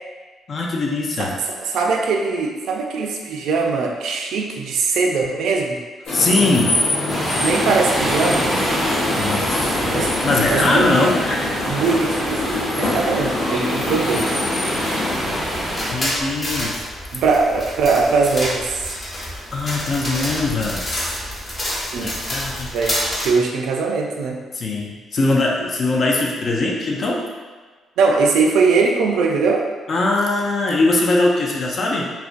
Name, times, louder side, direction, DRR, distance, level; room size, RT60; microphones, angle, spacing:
voice 1, 0.5-1.4 6.1-6.8 9.2-9.9 10.2-11.2 15.9-16.9 19.5-21.2 22.0-22.7 24.5-27.2 29.9-32.1, left 2 dB, 50° left, -1 dB, 0.4 m, -21 dB
voice 2, 1.6-5.8 7.3-8.5 9.8-10.1 10.5-11.1 11.7-14.4 17.1-18.9 21.9-22.2 22.7-23.0 23.2-24.4 28.0-29.6, right 4 dB, 80° right, 1 dB, 0.3 m, -20 dB
sound 1, 6.1-15.2, left 2 dB, 85° left, 0.8 m, -25 dB
sound 2, 7.1-16.0, equal, ahead, 0.8 m, -25 dB
sound 3, 15.4-23.3, equal, 30° left, 0.8 m, -28 dB
2.4 x 2.1 x 2.4 m, 1.4 s
cardioid pair, 90°, 0 cm